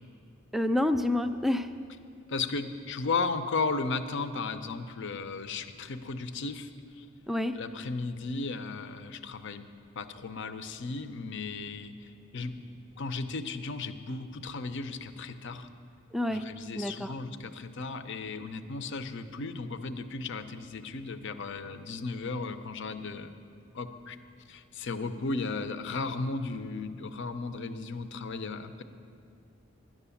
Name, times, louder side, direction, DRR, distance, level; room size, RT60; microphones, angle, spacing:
voice 1, 0.5-1.7 7.3-7.6 16.1-16.5 16.7-17.1, left 1 dB, ahead, 8 dB, 0.4 m, -28 dB
voice 2, 2.3-7.1 7.5-9.7 10.0-12.6 13.0-15.7 16.3-23.4 23.7-24.2 24.5-28.8, left 3 dB, 65° left, 10 dB, 0.7 m, -35 dB
11.0 x 10.5 x 7.1 m, 2.4 s
head